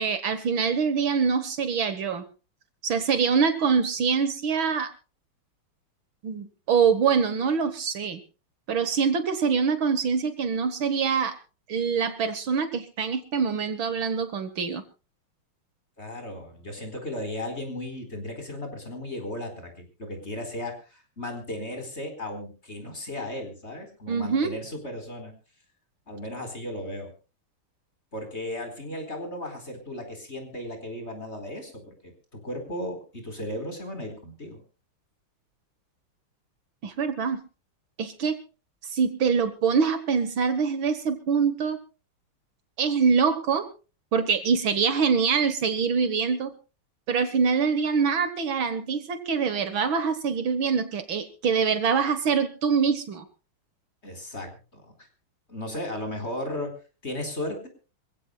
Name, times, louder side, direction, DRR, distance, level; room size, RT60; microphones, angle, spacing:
voice 1, 0.0-2.2 2.8-4.9 6.2-8.2 8.7-11.4 11.7-14.8 24.1-24.6 36.8-37.4 38.0-38.4 38.9-41.8 42.8-43.7 44.1-46.5 47.1-53.3, right 6 dB, 65° right, 11 dB, 2.1 m, -24 dB
voice 2, 16.0-25.3 26.1-27.1 28.1-34.6 54.0-54.9 55.5-56.7 57.0-57.7, left 1 dB, 30° left, 6 dB, 4.5 m, -35 dB
26.0 x 16.0 x 2.3 m, 0.34 s
omnidirectional pair, 2.4 m